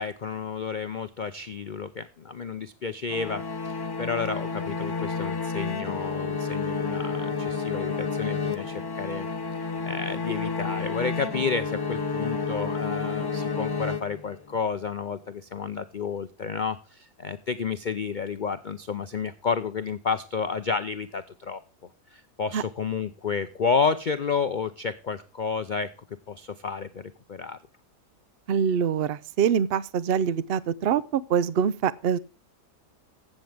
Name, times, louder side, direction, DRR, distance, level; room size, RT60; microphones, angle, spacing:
voice 1, 0.0-9.3 9.8-21.6 22.1-25.9 26.3-27.6, left 5 dB, 85° left, 0.4 m, -31 dB
sound 1, 3.1-14.6, left 4 dB, 25° left, 0.6 m, -30 dB
voice 2, 28.5-32.2, right 7 dB, 65° right, 0.5 m, -24 dB
15.0 x 7.6 x 3.5 m
omnidirectional pair, 1.7 m